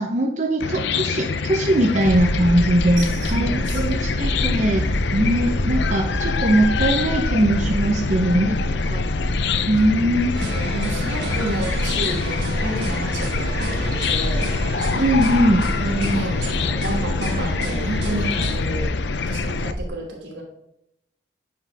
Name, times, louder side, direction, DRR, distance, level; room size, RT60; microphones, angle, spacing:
voice 1, 0.0-9.0 9.7-10.3 14.9-15.6, right 1 dB, 40° right, 1 dB, 0.7 m, -20 dB
Chicken rooster / Cricket, 0.6-19.7, left 5 dB, 65° left, 0.5 m, -26 dB
sound 1, 2.1-19.9, equal, ahead, 0.9 m, -28 dB
voice 2, 3.0-4.0 8.0-8.6 10.5-14.4 15.7-18.9 19.3-20.4, right 1 dB, 80° right, -1 dB, 2.6 m, -31 dB
sound 2, 10.3-18.6, right 2 dB, 60° right, 1.4 m, -31 dB
9.4 x 4.8 x 3.4 m, 0.79 s
head